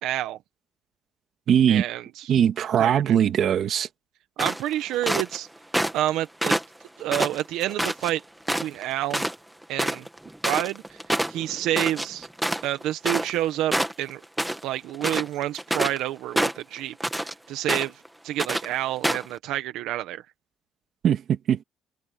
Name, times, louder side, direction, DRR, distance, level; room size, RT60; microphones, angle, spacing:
voice 1, 0.0-0.4 1.7-2.3 2.8-3.2 4.4-5.5 5.9-6.6 7.0-8.2 8.5-9.3 9.7-10.1 10.4-11.0 11.3-12.3 12.6-14.2 14.6-20.2, right 13 dB, 80° right, 1.3 m, -29 dB
voice 2, 1.5-1.8 2.3-3.9 21.0-21.6, right 9 dB, 45° right, 2.1 m, -21 dB
sound 1, 4.4-5.4 5.7-6.1 6.4-8.1 8.5-8.8 9.1-9.4 9.6-13.5 13.7-14.6 14.9-16.0 16.4-17.3 17.7-18.1 18.4-18.7 19.0-19.3, right 1 dB, 5° right, 1.5 m, -26 dB
cardioid pair, 165°, 0 cm